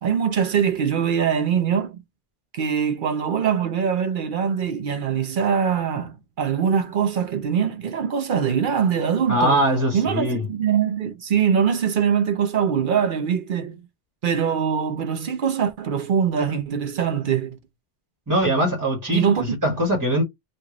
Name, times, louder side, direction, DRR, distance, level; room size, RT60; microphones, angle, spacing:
voice 1, 0.0-2.0 2.5-9.6 9.9-13.9 14.2-17.6 19.1-19.6, right 7 dB, 60° right, 0.7 m, -23 dB
voice 2, 9.3-10.4 18.3-20.2, equal, 20° right, 1.2 m, -22 dB
3.1 x 2.5 x 3.7 m
omnidirectional pair, 1.1 m